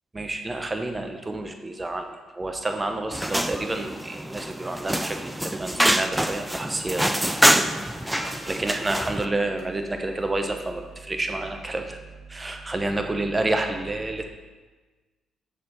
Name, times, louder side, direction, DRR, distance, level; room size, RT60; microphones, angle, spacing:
voice 1, 0.1-7.7 8.0-12.0 12.3-14.3, right 2 dB, 25° right, 5 dB, 0.9 m, -29 dB
sound 1, 3.1-9.2, right 1 dB, 5° right, 0.4 m, -25 dB
sound 2, 7.8-11.1 11.4-11.6, left 1 dB, 60° left, 1.8 m, -48 dB
6.5 x 4.3 x 5.6 m, 1.3 s
hypercardioid pair, 50°, 0 cm